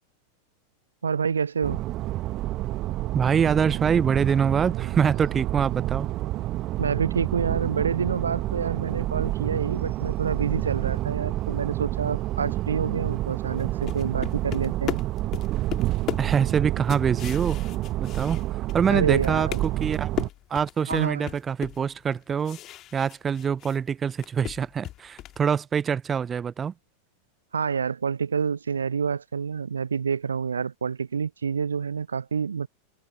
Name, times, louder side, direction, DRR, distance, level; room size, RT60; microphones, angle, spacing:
voice 1, 1.0-1.8 6.8-15.0 18.9-19.8 20.9-21.3 27.5-32.7, right 6 dB, 70° right, 0.4 m, -28 dB
Train ride (inside the car), 1.6-20.3, right 16 dB, 35° right, 1.4 m, -29 dB
voice 2, 3.1-6.1 16.2-17.6 18.0-18.4 18.7-20.1 20.5-22.6 22.9-26.7, right 7 dB, 20° right, 0.9 m, -25 dB
sound 1, 13.6-18.9 19.2-23.8 24.1-25.4, left 14 dB, 35° left, 2.4 m, -36 dB
figure-of-eight pair, 90°, 0 cm